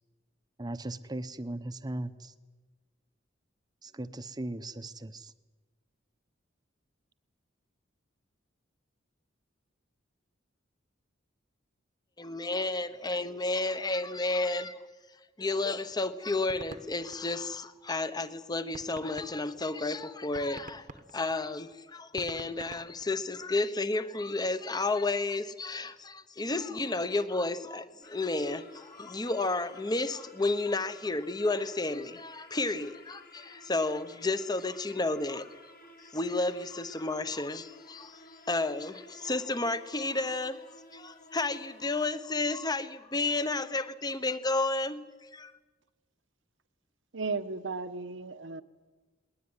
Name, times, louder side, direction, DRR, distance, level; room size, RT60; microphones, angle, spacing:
voice 1, 0.6-2.3 3.8-5.3, right 1 dB, 20° right, 0.9 m, -38 dB
voice 2, 12.2-14.8 15.4-20.9 21.1-35.5 36.1-38.2 38.5-40.6 40.9-45.0 45.3-45.5, left 2 dB, 20° left, 1.0 m, -31 dB
sound 1, 15.9-18.0 18.4-18.5 18.7-23.6, right 3 dB, 40° right, 1.1 m, -48 dB
sound 2, 28.0-41.9, left 1 dB, 50° left, 2.7 m, -54 dB
voice 3, 47.1-48.6, right 4 dB, 75° right, 1.2 m, -35 dB
20.5 x 19.5 x 9.7 m
head